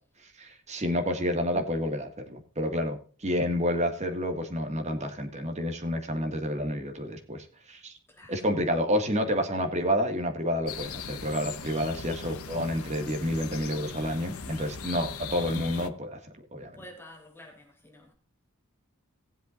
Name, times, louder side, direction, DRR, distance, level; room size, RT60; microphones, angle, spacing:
voice 1, 0.4-7.9 8.3-16.2 16.5-16.8, equal, 30° right, 1.9 m, -29 dB
voice 2, 8.1-8.5 14.8-14.9 16.8-18.1, left 1 dB, 10° left, 3.4 m, -50 dB
sound 1, 10.7-15.9, left 5 dB, 80° left, 1.0 m, -39 dB
19.0 x 8.1 x 2.5 m
head